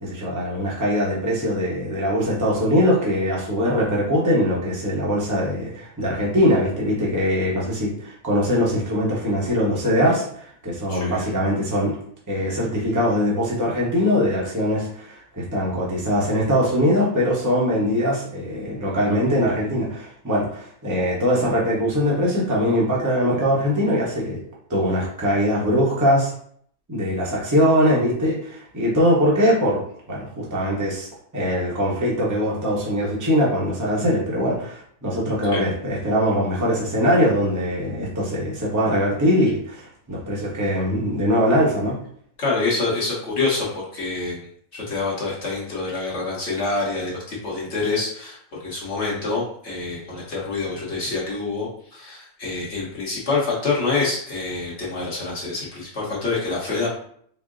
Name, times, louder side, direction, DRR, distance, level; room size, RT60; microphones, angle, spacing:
voice 1, 0.0-11.9 12.3-24.4 24.7-26.3 26.9-29.8 30.1-31.1 31.3-42.0, equal, 15° right, -5 dB, 0.8 m, -22 dB
voice 2, 10.9-11.3 35.5-35.6 42.4-44.5 44.7-56.9, left 3 dB, 50° left, -6 dB, 1.3 m, -26 dB
4.3 x 2.1 x 3.7 m, 0.63 s
omnidirectional pair, 1.6 m